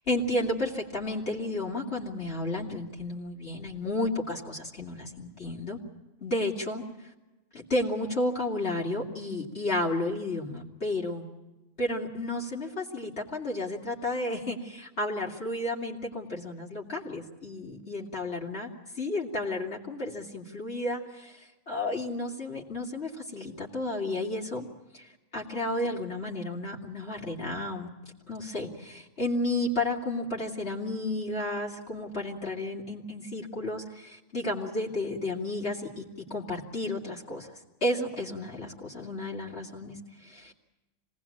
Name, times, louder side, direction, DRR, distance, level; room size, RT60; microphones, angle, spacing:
voice 1, 0.1-5.8 6.2-6.8 7.5-11.3 11.8-18.7 19.0-24.7 24.9-27.9 28.3-37.5 37.8-40.5, left 1 dB, 55° left, -3 dB, 3.2 m, -32 dB
26.5 x 19.0 x 8.6 m, 1.1 s
omnidirectional pair, 1.3 m